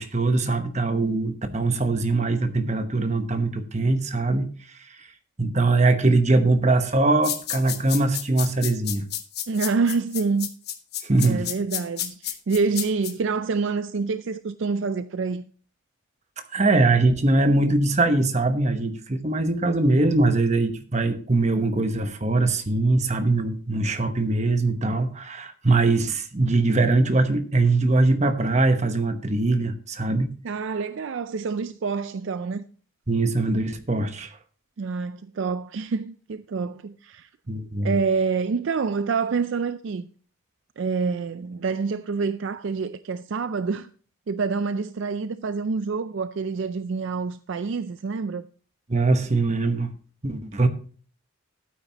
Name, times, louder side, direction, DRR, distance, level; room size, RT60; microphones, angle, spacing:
voice 1, 0.0-4.5 5.4-9.0 11.0-11.4 16.5-30.3 33.1-34.3 37.5-38.0 48.9-49.9 50.2-50.7, right 2 dB, 30° right, 1.0 m, -22 dB
sound 1, 7.2-13.1, left 11 dB, 50° left, 1.1 m, -30 dB
voice 2, 9.5-10.5 11.2-15.4 30.4-32.6 34.8-37.3 37.8-40.1 40.8-43.9 44.3-48.4, right 4 dB, 60° right, 0.4 m, -27 dB
13.0 x 9.0 x 2.9 m
head